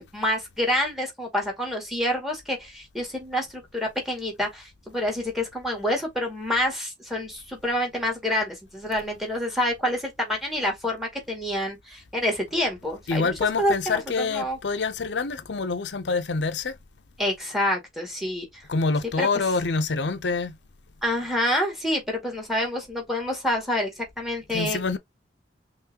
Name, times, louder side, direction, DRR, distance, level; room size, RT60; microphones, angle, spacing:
voice 1, 0.1-14.6 17.2-18.6 19.2-19.3 21.0-23.9 24.2-24.8, left 1 dB, ahead, 2.1 m, -27 dB
voice 2, 13.1-16.8 18.7-20.6 24.5-25.0, left 4 dB, 85° left, 0.6 m, -26 dB
5.7 x 3.2 x 2.9 m
head